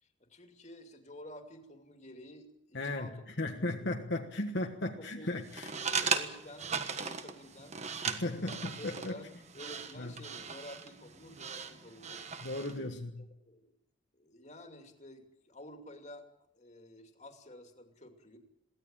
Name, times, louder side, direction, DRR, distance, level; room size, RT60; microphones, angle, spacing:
voice 1, 0.0-3.2 3.6-3.7 5.0-5.3 5.8-7.8 8.3-12.5 13.3-13.7 14.1-16.2 16.5-18.4, left 1 dB, 35° left, 5 dB, 2.6 m, -51 dB
voice 2, 2.7-3.1 3.4-5.7 8.0-9.2 10.0-10.1 12.4-13.2, left 2 dB, 55° left, 3 dB, 1.4 m, -36 dB
sound 1, 5.5-12.8, right 5 dB, 35° right, 1.4 m, -38 dB
22.5 x 17.0 x 8.9 m, 0.82 s
head